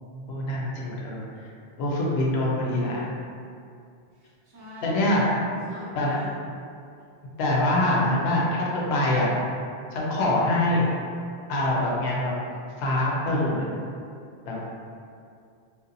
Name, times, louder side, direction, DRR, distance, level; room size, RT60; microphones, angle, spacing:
voice 1, 0.3-1.5 1.8-3.0 4.8-5.3 6.0-6.2 7.4-9.3 9.9-10.9 11.5-12.3 12.8-13.6 14.5-14.6, left 1 dB, 80° left, -4 dB, 0.8 m, -24 dB
voice 2, 2.7-3.1 4.1-5.2 5.7-6.4, left 1 dB, 25° right, -8 dB, 0.4 m, -43 dB
2.7 x 2.0 x 2.5 m, 2.4 s
omnidirectional pair, 1.1 m